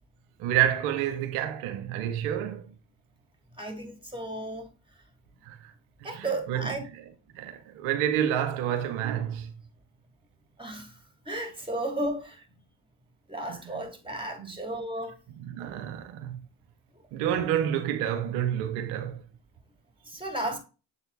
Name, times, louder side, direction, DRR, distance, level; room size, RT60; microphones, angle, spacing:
voice 1, 0.4-2.7 5.4-5.7 6.0-6.8 7.3-9.5 13.5-13.6 14.4-14.5 15.4-16.4 17.1-19.2, right 10 dB, 90° right, 0.9 m, -29 dB
voice 2, 3.6-4.7 6.0-6.8 10.6-11.0 11.2-12.4 13.3-15.1 20.1-20.6, right 1 dB, 10° right, 3.0 m, -34 dB
7.3 x 4.2 x 4.0 m
hypercardioid pair, 45°, 48 cm